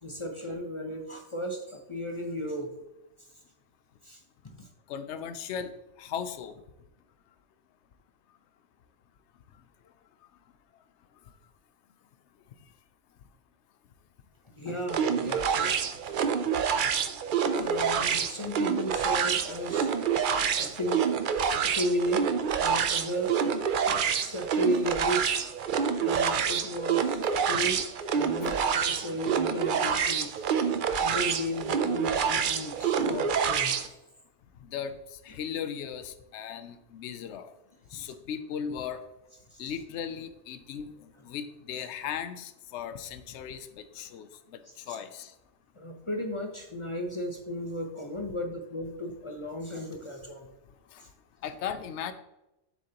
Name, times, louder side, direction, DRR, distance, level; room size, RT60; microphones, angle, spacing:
voice 1, 0.0-2.7 4.0-4.7 14.6-15.9 17.5-19.9 20.4-21.1 21.5-23.4 23.9-25.4 26.0-27.8 28.1-30.7 31.0-33.8 35.3-35.4 37.9-38.1 39.5-39.6 41.7-41.9 44.6-45.0 45.7-50.5 51.0-51.1, equal, 30° left, 3 dB, 0.7 m, -35 dB
voice 2, 4.9-5.7 6.0-6.5 28.4-28.6 34.7-34.9 35.2-37.4 37.9-39.0 39.6-40.9 41.2-43.7 44.0-44.3 44.9-45.3 51.4-52.1, left 8 dB, 70° left, 11 dB, 0.9 m, -36 dB
sound 1, 14.9-33.9, right 7 dB, 55° right, 0.6 m, -27 dB
7.6 x 6.5 x 2.9 m, 0.93 s
omnidirectional pair, 1.2 m